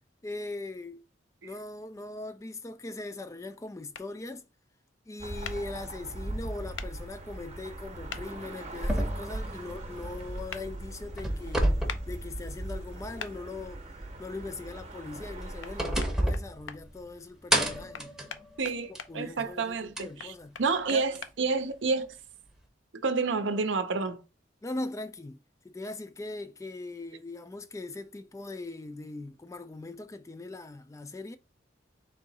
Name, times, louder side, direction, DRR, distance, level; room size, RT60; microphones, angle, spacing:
voice 1, 0.2-1.0 1.4-4.5 5.1-11.8 12.1-13.8 14.2-18.1 19.1-20.6 20.9-21.0 24.6-31.4, left 2 dB, 15° left, 0.3 m, -40 dB
sound 1, 3.9-4.1 5.4-5.6 6.8-6.9 8.1-8.2 10.5-10.6 11.9-12.0 13.2-13.3 15.6-15.7 16.0-16.8 17.9-19.1 20.2-21.3, left 7 dB, 75° left, 0.5 m, -40 dB
sound 2, 5.2-16.1, right 1 dB, 35° right, 0.8 m, -41 dB
sound 3, 8.8-10.6 10.9-13.0 13.3-13.4 15.0-17.1 17.5-19.2 20.0-20.1 21.1-21.2, right 1 dB, 5° right, 0.7 m, -30 dB
voice 2, 18.6-22.1 22.9-24.2, right 4 dB, 75° right, 0.6 m, -29 dB
3.6 x 2.8 x 3.9 m
head